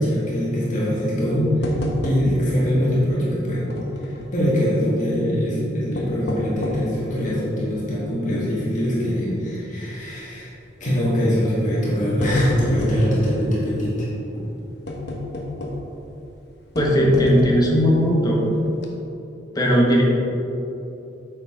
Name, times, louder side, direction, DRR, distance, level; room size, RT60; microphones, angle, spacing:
voice 1, 0.0-1.7 2.0-3.7 4.0-10.5 10.8-14.1, equal, 45° left, -7 dB, 2.0 m, -22 dB
sound 1, 1.6-2.6 2.9-3.0 3.7-4.4 5.7-7.0 7.5-7.6 8.3-8.5 8.8-8.9 10.1-10.4 11.3-11.4 11.8-13.1 14.9-16.0 16.8-17.7 18.3-18.4 18.7-18.9, left 2 dB, 65° left, 1.1 m, -29 dB
voice 2, 16.7-18.4 19.5-20.0, equal, 20° left, -2 dB, 1.4 m, -17 dB
8.8 x 6.8 x 3.9 m, 2.9 s
head